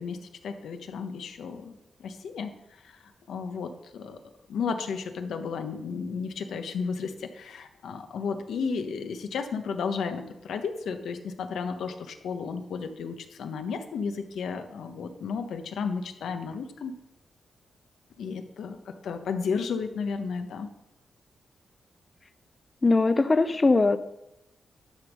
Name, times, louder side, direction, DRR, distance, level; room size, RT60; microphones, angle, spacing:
voice 1, 0.0-1.7 2.0-2.5 2.8-3.0 3.3-4.2 4.5-17.0 18.2-20.7, left 5 dB, 85° left, 7 dB, 1.0 m, -33 dB
voice 2, 22.8-24.0, left 3 dB, 25° left, 11 dB, 0.4 m, -21 dB
11.5 x 5.4 x 6.2 m, 0.86 s
wide cardioid pair, 145°, 0 cm